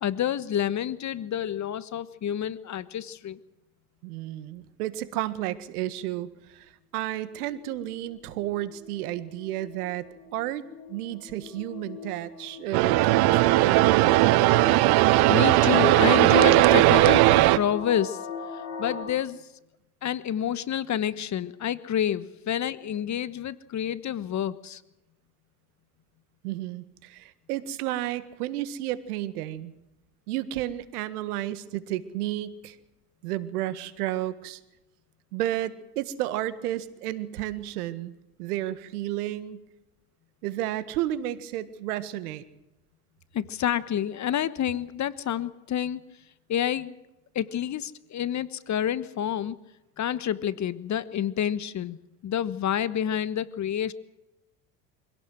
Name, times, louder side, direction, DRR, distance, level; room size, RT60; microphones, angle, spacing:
voice 1, 0.0-3.4 15.3-18.2 18.8-19.4 20.0-24.8 43.3-46.0 46.5-47.0 47.3-49.6 50.0-52.0 52.2-53.9, left 10 dB, 40° left, 17 dB, 1.2 m, -28 dB
voice 2, 4.0-10.1 10.3-14.6 26.4-29.7 30.3-32.8 33.2-34.6 35.3-38.1 38.4-39.6 40.4-42.4, right 14 dB, 75° right, 15 dB, 1.7 m, -32 dB
sound 1, 7.1-19.0, left 5 dB, 85° left, 5.5 m, -41 dB
sound 2, 12.7-17.6, right 17 dB, 55° right, 1.1 m, -18 dB
25.5 x 17.5 x 7.8 m, 0.93 s
hypercardioid pair, 80°, 45 cm